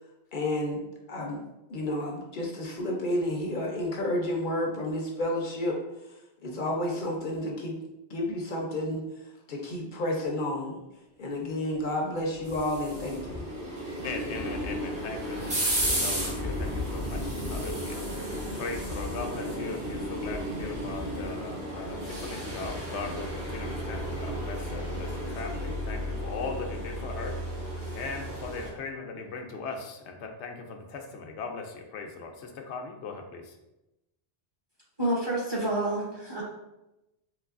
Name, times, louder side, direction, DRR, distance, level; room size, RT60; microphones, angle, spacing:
voice 1, 0.3-0.8 1.1-1.4 1.7-5.8 6.4-7.8 8.1-9.0 9.5-10.8 11.2-13.4, left 1 dB, 55° left, 0 dB, 0.6 m, -30 dB
sound 1, 12.0-28.7, equal, 50° right, 1.3 m, -33 dB
voice 2, 14.0-18.0 18.6-27.4 27.9-33.5, left 4 dB, 90° left, 3 dB, 0.9 m, -39 dB
voice 3, 35.0-36.4, right 1 dB, 25° right, -5 dB, 0.7 m, -28 dB
3.9 x 2.9 x 2.4 m, 0.94 s
omnidirectional pair, 1.1 m